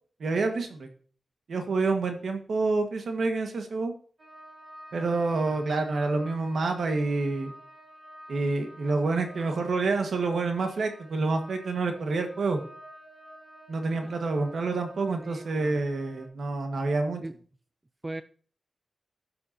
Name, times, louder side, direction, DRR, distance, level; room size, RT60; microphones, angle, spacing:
voice 1, 0.2-0.9 1.5-3.9 4.9-7.5 8.3-12.6 13.7-17.2, right 3 dB, 75° right, 5 dB, 1.5 m, -28 dB
sound 1, 4.2-16.3, right 1 dB, 40° right, 3.2 m, -50 dB
voice 2, 15.2-15.8 17.2-17.3 18.0-18.2, right 2 dB, 25° right, 12 dB, 0.4 m, -39 dB
13.0 x 7.8 x 2.8 m, 0.43 s
wide cardioid pair, 100°, 0 cm